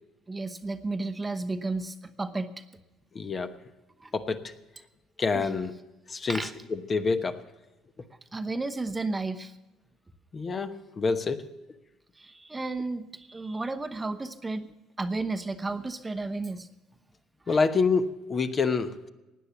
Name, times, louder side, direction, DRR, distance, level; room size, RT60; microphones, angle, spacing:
voice 1, 0.3-2.6 4.0-4.1 5.3-5.5 6.1-6.5 8.3-9.6 12.2-14.7 15.0-16.7 17.5-17.6, right 3 dB, 20° right, 10 dB, 1.0 m, -33 dB
voice 2, 3.1-3.5 4.1-4.5 5.2-5.7 6.1-7.4 10.3-11.6 17.5-19.1, left 4 dB, 35° left, 8 dB, 1.0 m, -27 dB
17.0 x 9.7 x 6.9 m, 1.1 s
supercardioid pair, 85°, 0 cm